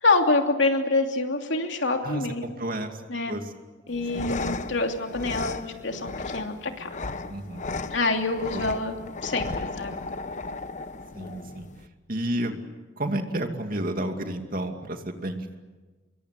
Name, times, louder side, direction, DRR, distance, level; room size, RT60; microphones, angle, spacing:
voice 1, 0.0-2.4 3.1-3.3 3.9-6.9 7.9-9.9, left 3 dB, 70° left, 4 dB, 2.9 m, -26 dB
voice 2, 2.0-3.0 3.2-3.4 4.1-4.6 7.3-7.6 8.5-8.6 11.1-11.7 12.1-12.6 13.0-15.6, right 1 dB, 50° right, 5 dB, 2.5 m, -31 dB
sound 1, 3.9-11.9, left 3 dB, 40° left, 1.0 m, -35 dB
26.0 x 23.0 x 8.3 m, 1.3 s
head